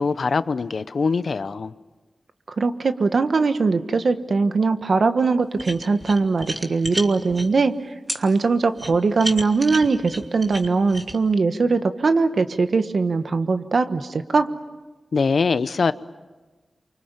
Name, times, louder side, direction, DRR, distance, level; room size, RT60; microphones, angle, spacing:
voice 1, 0.0-1.7 15.1-15.9, left 4 dB, 75° left, 14 dB, 0.8 m, -22 dB
voice 2, 2.6-7.7 8.2-14.5, right 4 dB, 70° right, 9 dB, 1.4 m, -21 dB
sound 1, 5.6-7.5 8.1-8.2 8.8-11.2, right 1 dB, 25° right, 2.7 m, -31 dB
28.5 x 24.5 x 7.4 m, 1.3 s
cardioid pair, 45°, 0 cm